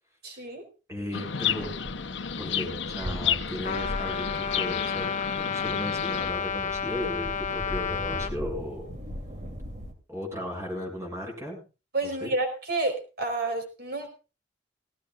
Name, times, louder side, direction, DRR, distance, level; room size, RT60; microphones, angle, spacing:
voice 1, 0.2-0.6 11.9-14.1, right 2 dB, 60° right, 5 dB, 4.3 m, -30 dB
voice 2, 0.9-1.7 2.4-8.9 10.1-11.6 12.0-12.3, equal, 15° right, 1 dB, 7.0 m, -36 dB
sound 1, 1.0-9.9, equal, 40° right, 3.0 m, -40 dB
Chirp tweet, 1.1-6.3, left 8 dB, 85° left, 0.9 m, -32 dB
Trumpet, 3.6-8.3, left 7 dB, 45° left, 0.9 m, -31 dB
18.0 x 17.0 x 2.5 m, 0.32 s
head